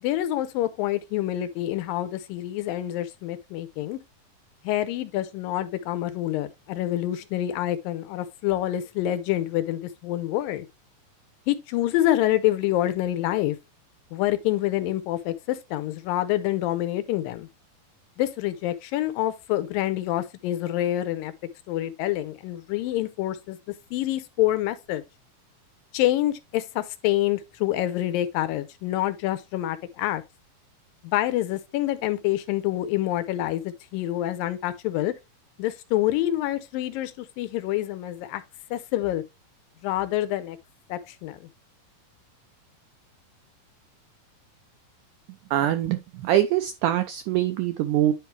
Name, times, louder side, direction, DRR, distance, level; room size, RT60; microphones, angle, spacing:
voice 1, 0.0-4.0 4.6-10.7 11.5-13.6 14.1-17.5 18.2-21.3 21.7-23.6 23.9-25.0 25.9-30.2 31.0-35.1 35.6-38.4 38.7-39.2 39.8-40.6 40.9-41.4, left 14 dB, 80° left, 2.3 m, -27 dB
voice 2, 45.5-48.1, right 12 dB, 85° right, 1.8 m, -23 dB
10.0 x 4.7 x 3.1 m
omnidirectional pair, 4.2 m